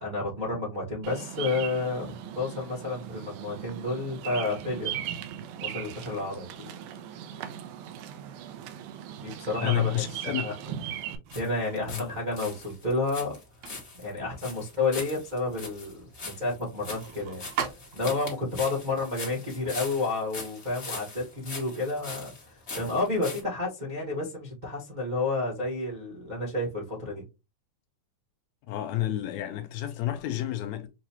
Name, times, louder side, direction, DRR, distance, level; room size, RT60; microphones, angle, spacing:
voice 1, 0.0-5.0 5.6-6.5 9.2-10.5 11.3-13.4 13.9-17.4 17.9-27.2, left 3 dB, 45° right, 0.6 m, -31 dB
Bird vocalization bird call bird song, 1.0-11.2, right 10 dB, 90° right, 2.1 m, -38 dB
voice 2, 9.6-10.5 11.9-12.1 28.7-30.9, left 13 dB, 80° left, 1.8 m, -30 dB
sound 1, 11.2-18.3, right 8 dB, 70° right, 1.7 m, -42 dB
sound 2, 11.3-12.1 12.3-23.4, left 3 dB, 55° left, 0.7 m, -41 dB
6.6 x 2.3 x 2.8 m
omnidirectional pair, 3.5 m